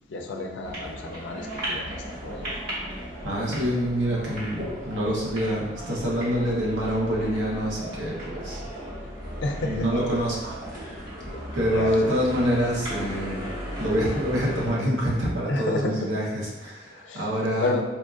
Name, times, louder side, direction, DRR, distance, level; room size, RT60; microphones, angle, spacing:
voice 1, 0.1-2.5 9.4-9.9 11.3-12.0 15.5-16.1 17.0-17.3 17.6-17.8, left 3 dB, 70° left, 3 dB, 0.4 m, -31 dB
sound 1, 0.6-14.7, equal, 50° right, 1.2 m, -35 dB
voice 2, 3.2-8.6 9.6-11.0 11.5-13.4 13.8-17.8, equal, 80° right, -4 dB, 0.9 m, -26 dB
4.4 x 2.4 x 2.4 m, 1.1 s
head